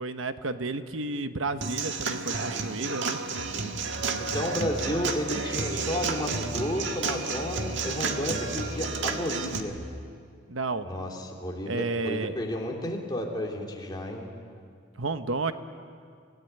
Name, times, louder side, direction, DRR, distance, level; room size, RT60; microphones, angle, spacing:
voice 1, 0.0-3.2 10.5-10.9 11.7-12.4 15.0-15.5, right 3 dB, 85° right, 9 dB, 1.1 m, -31 dB
Human voice / Acoustic guitar / Drum, 1.6-9.6, right 4 dB, 65° right, 1.7 m, -31 dB
Musical instrument, 3.3-10.1, equal, 60° left, 5.3 m, -42 dB
voice 2, 4.3-9.7 10.8-14.3, left 1 dB, 20° left, -1 dB, 3.1 m, -32 dB
28.0 x 17.5 x 9.3 m, 2.2 s
head